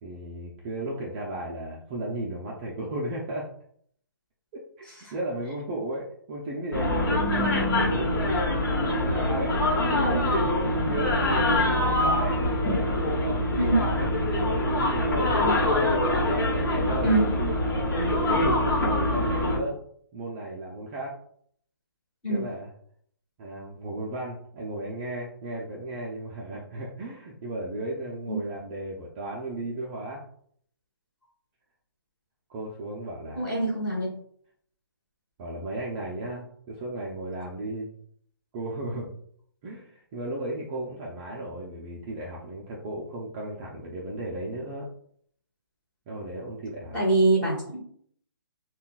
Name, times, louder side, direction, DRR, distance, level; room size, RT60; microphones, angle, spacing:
voice 1, 0.0-3.5 4.5-4.9 5.1-15.3 16.2-17.6 18.2-19.8 20.1-21.2 22.3-22.7 23.4-30.2 32.5-33.4 35.4-37.9 38.5-39.1 39.6-44.9 46.1-47.0, right 1 dB, 25° right, -3 dB, 0.5 m, -35 dB
sound 1, 6.7-19.6, left 1 dB, 60° left, 1.1 m, -24 dB
voice 2, 33.3-34.1 46.9-47.8, right 2 dB, 10° left, -6 dB, 1.3 m, -24 dB
5.4 x 2.3 x 2.3 m, 0.63 s
hypercardioid pair, 160°, 12 cm